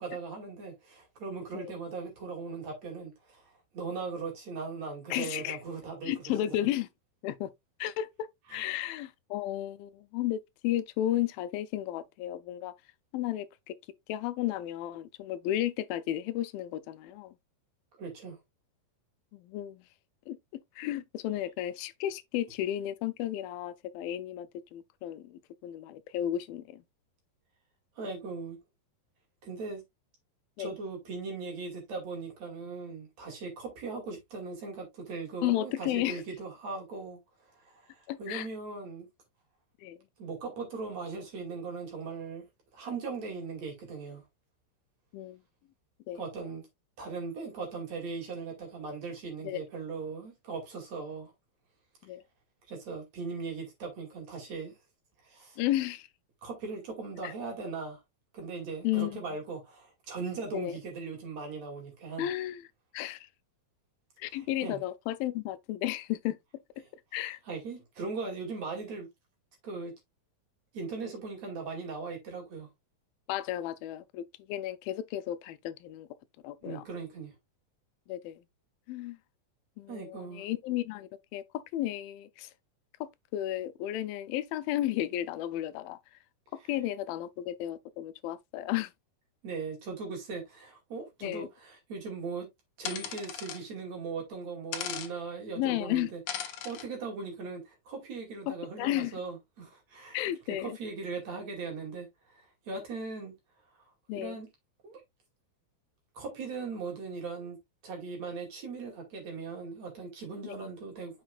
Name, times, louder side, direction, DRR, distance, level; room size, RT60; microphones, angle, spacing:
voice 1, 0.0-3.4 3.7-6.1 6.4-6.5 8.5-8.7 18.0-18.4 28.0-28.6 29.4-29.8 30.6-37.2 37.6-39.1 40.2-42.4 42.7-44.2 46.1-46.6 47.0-51.3 52.7-54.7 55.2-55.6 56.4-58.0 58.3-62.3 64.3-64.8 67.3-69.1 69.6-69.9 70.7-72.7 76.6-77.3 79.9-80.4 86.6-86.7 89.4-92.5 92.8-96.2 96.6-100.2 100.6-103.3 104.1-104.5 104.8-105.0 106.1-107.6 107.8-111.2, right 4 dB, 50° right, 3.3 m, -39 dB
voice 2, 5.1-5.6 6.0-6.9 7.2-7.5 7.8-12.7 13.1-13.7 14.1-17.3 19.3-19.8 20.3-20.4 20.8-26.8 30.6-30.7 35.4-36.2 38.1-38.5 39.8-40.0 45.1-45.4 46.1-46.2 49.4-49.6 52.0-52.2 55.6-56.1 57.2-57.3 58.8-59.2 60.5-60.8 62.2-62.6 62.9-63.3 64.2-66.4 67.1-67.4 73.3-76.1 76.4-76.8 78.1-78.4 78.9-79.2 79.8-82.5 83.0-86.0 86.7-88.9 91.2-91.5 95.6-96.1 98.5-99.2 100.1-100.8 104.1-104.4 110.4-110.5, left 13 dB, 85° left, 2.4 m, -33 dB
sound 1, 92.8-93.6 94.7-95.1 96.3-96.8, left 9 dB, 65° left, 2.3 m, -37 dB
7.5 x 6.3 x 2.4 m
omnidirectional pair, 4.1 m